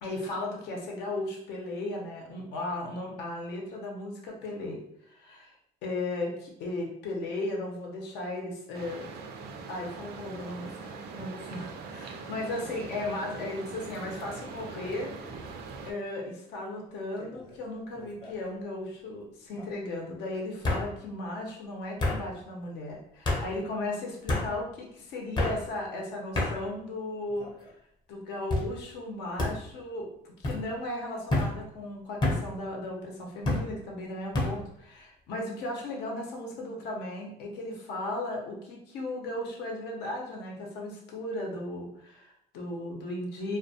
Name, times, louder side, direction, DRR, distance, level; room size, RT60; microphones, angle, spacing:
voice 1, 0.0-4.8 5.1-5.5 5.8-9.0 9.7-11.7 11.9-15.1 15.8-27.5 28.1-30.1 30.4-43.6, left 2 dB, 85° left, 0 dB, 0.7 m, -36 dB
sound 1, 8.7-15.9, right 4 dB, 70° right, 0.4 m, -42 dB
sound 2, 17.2-17.6 18.0-18.5 19.6-19.7 20.6-20.9 22.0-22.2 23.2-23.4 24.3-24.5 25.3-25.6 26.3-26.5 27.3-27.7 28.5-28.7 29.4-29.5 30.4-30.6 31.3-31.5 32.2-32.4 33.4-33.6 34.3-34.5, left 2 dB, 25° left, 0.6 m, -28 dB
2.2 x 2.2 x 2.7 m, 0.74 s
cardioid pair, 110°, 17 cm